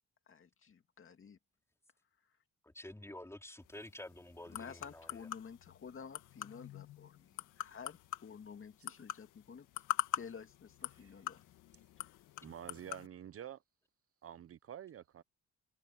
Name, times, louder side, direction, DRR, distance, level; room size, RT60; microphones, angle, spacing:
voice 1, 0.3-1.4 4.5-9.7 10.2-11.4, left 6 dB, 45° left, 2.3 m, -51 dB
voice 2, 2.6-5.3, left 1 dB, 10° left, 3.9 m, -50 dB
sound 1, 3.6-13.1, left 13 dB, 85° left, 1.7 m, -44 dB
voice 3, 12.4-13.6 14.2-15.2, right 10 dB, 50° right, 0.7 m, -48 dB
cardioid pair, 90°, 30 cm